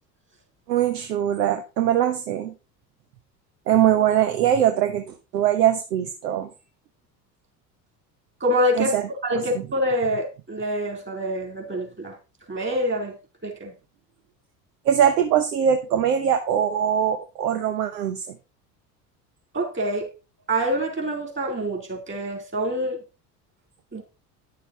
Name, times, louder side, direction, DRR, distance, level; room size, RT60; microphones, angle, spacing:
voice 1, 0.7-2.5 3.7-6.5 8.7-9.6 14.8-18.4, right 10 dB, 75° right, 1.0 m, -22 dB
voice 2, 8.4-9.0 9.2-12.2 12.5-13.1 13.4-13.7 19.5-20.1 20.5-23.0 23.9-24.0, equal, 25° right, 3.7 m, -26 dB
10.5 x 6.9 x 4.2 m
hypercardioid pair, 70°, 49 cm